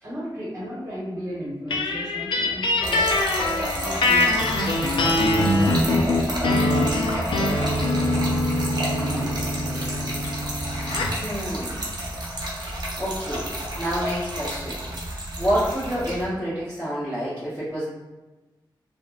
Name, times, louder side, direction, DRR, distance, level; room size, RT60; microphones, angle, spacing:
voice 1, 0.0-3.0 3.8-4.4 4.9-6.9 7.6-8.4 8.8-10.3 15.1-15.3, equal, 30° right, -8 dB, 0.9 m, -35 dB
sound 1, 1.7-11.2, left 2 dB, 85° left, 0.4 m, -23 dB
Trickle dribble / Fill (with liquid), 2.8-16.2, right 1 dB, 60° right, 0.7 m, -31 dB
voice 2, 9.0-9.4 11.1-11.9 12.6-13.5 13.8-14.7 15.4-17.8, equal, 15° left, -14 dB, 1.1 m, -28 dB
3.2 x 2.0 x 2.3 m, 1.2 s
wide cardioid pair, 115°, 8 cm